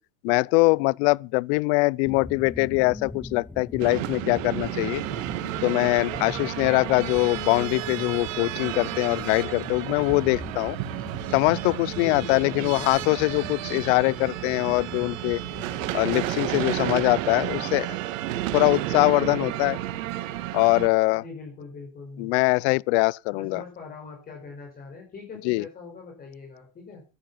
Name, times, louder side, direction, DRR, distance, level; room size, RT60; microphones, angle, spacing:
voice 1, 0.2-5.0 5.6-10.8 11.3-15.4 15.9-18.0 18.5-19.8 20.5-21.2 22.2-23.6 25.5-25.6, left 25 dB, 60° left, 0.6 m, -23 dB
sound 1, 2.1-17.8, left 3 dB, 5° left, 0.7 m, -42 dB
sound 2, 3.8-20.9, right 14 dB, 85° right, 2.3 m, -32 dB
voice 2, 6.1-6.5 12.0-13.3 21.1-22.3 23.3-27.0, left 4 dB, 25° left, 5.0 m, -42 dB
14.0 x 10.5 x 5.6 m
cardioid pair, 160°, 38 cm